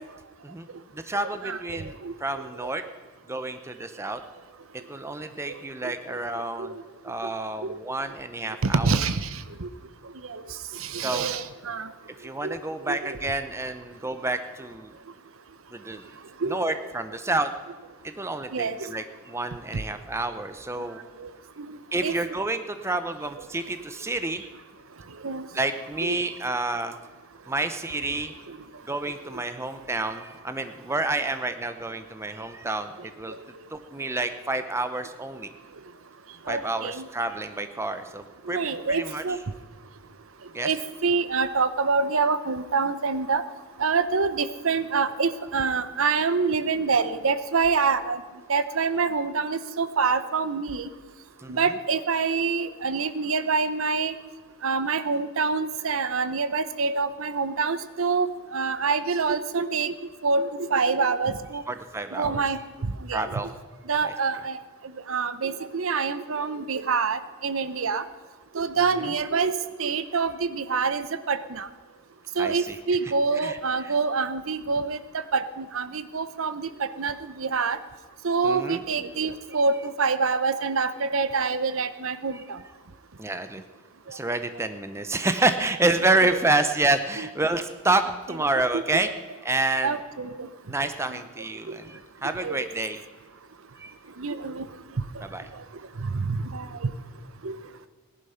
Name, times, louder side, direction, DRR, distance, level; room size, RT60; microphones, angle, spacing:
voice 1, 0.9-2.8 3.3-4.2 4.9-6.7 7.0-8.9 11.0-11.3 12.2-14.9 15.7-16.1 16.4-17.5 18.0-21.0 21.9-24.4 25.5-26.9 27.5-28.3 28.9-33.3 33.7-35.5 36.5-39.2 40.5-40.7 51.4-51.6 61.7-62.4 63.1-63.5 64.0-64.1 69.0-69.1 72.4-72.8 73.4-73.6 73.8-73.9 78.4-78.8 82.3-82.4 83.2-83.6 84.1-89.1 89.4-90.0 90.7-93.0 93.8-93.9 95.3-95.5, right 2 dB, 10° right, 9 dB, 0.6 m, -29 dB
voice 2, 8.6-9.7 10.3-10.4 10.8-11.9 12.4-12.5 12.9-13.0 16.4-16.6 17.3-17.4 18.5-18.9 21.2-21.3 21.7-22.1 25.2-25.4 26.0-26.2 28.5-28.6 36.5-37.0 38.5-39.4 40.6-43.4 43.8-48.2 48.5-50.9 51.5-54.2 54.6-59.9 60.2-61.6 62.1-63.3 63.9-64.6 65.1-68.0 68.5-69.5 69.8-71.7 72.4-77.8 78.2-82.6 86.2-86.4 87.2-87.3 88.7-88.8 89.8-90.5 91.1-91.2 91.7-91.8 92.4-92.6 94.2-94.7 96.0-96.9 97.4-97.6, right 4 dB, 65° right, 13 dB, 0.7 m, -26 dB
17.5 x 11.5 x 5.7 m, 1.4 s
head